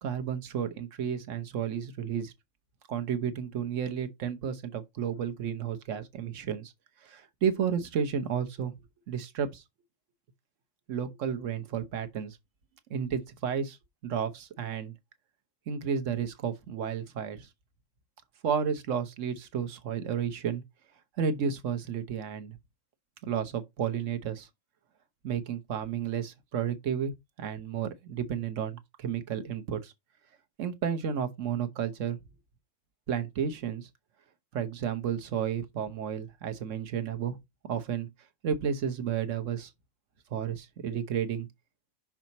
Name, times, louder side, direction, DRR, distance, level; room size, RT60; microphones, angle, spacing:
voice 1, 0.0-2.3 2.9-6.7 7.0-8.7 9.1-9.6 10.9-12.4 12.9-13.8 14.0-14.9 15.7-17.5 18.4-20.6 21.2-22.6 23.2-24.5 25.2-27.1 27.4-29.9 30.6-32.2 33.1-33.9 34.5-37.4 37.6-38.1 38.4-39.7 40.3-41.5, right 7 dB, 55° right, 1.3 m, -32 dB
6.1 x 4.9 x 4.1 m
omnidirectional pair, 1.6 m